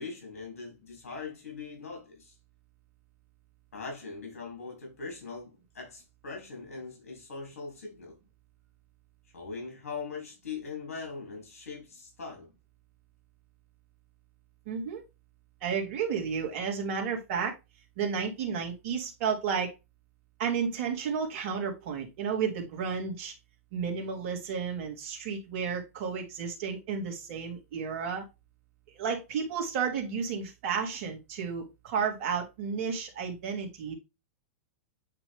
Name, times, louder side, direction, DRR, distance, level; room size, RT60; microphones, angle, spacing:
voice 1, 0.0-2.3 3.7-8.2 9.3-12.5, left 4 dB, 85° left, 3.2 m, -41 dB
voice 2, 14.7-15.0 15.6-17.5 18.0-19.7 20.4-23.3 23.7-28.2 28.9-33.9, right 6 dB, 55° right, 2.3 m, -32 dB
8.9 x 3.0 x 3.5 m
hypercardioid pair, 120°, 8 cm